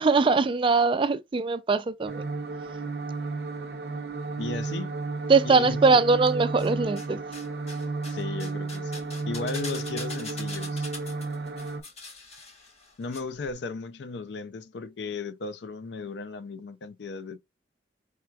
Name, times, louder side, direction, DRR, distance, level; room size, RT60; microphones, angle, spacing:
voice 1, 0.0-2.2 5.3-7.2, right 4 dB, 30° right, 0.3 m, -21 dB
sound 1, 2.1-11.8, right 3 dB, 60° right, 0.7 m, -33 dB
voice 2, 4.4-4.9 5.4-5.8 8.1-10.9 13.0-17.4, left 4 dB, 70° left, 0.5 m, -36 dB
sound 2, 6.2-7.1 7.3-13.2 13.4-13.5, left 3 dB, 35° left, 1.4 m, -42 dB
4.6 x 3.4 x 2.3 m
head